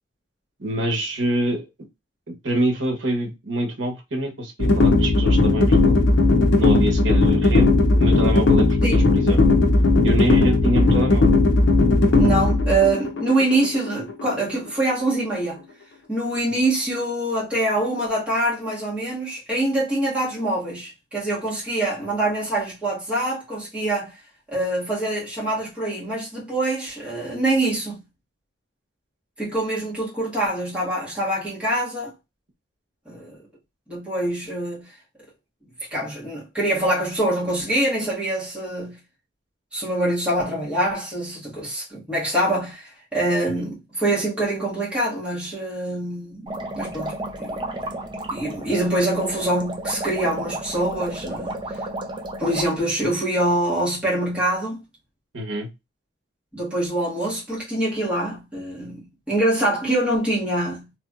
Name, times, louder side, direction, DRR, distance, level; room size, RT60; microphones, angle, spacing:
voice 1, 0.6-1.6 2.3-6.0 6.6-9.4 10.0-11.4 16.5-16.6 43.4-43.5 55.3-55.7, right 1 dB, 75° right, 1.2 m, -26 dB
sound 1, 4.6-14.7, left 2 dB, 70° left, 0.7 m, -17 dB
voice 2, 12.1-15.6 16.1-24.2 24.5-28.0 29.4-32.1 33.1-33.4 33.9-34.9 35.9-39.0 39.7-46.5 46.8-47.6 48.3-51.6 52.4-54.8 56.5-60.9, right 1 dB, 5° right, 1.7 m, -24 dB
sound 2, 46.5-52.7, right 1 dB, 25° right, 0.5 m, -32 dB
3.5 x 3.0 x 2.4 m
head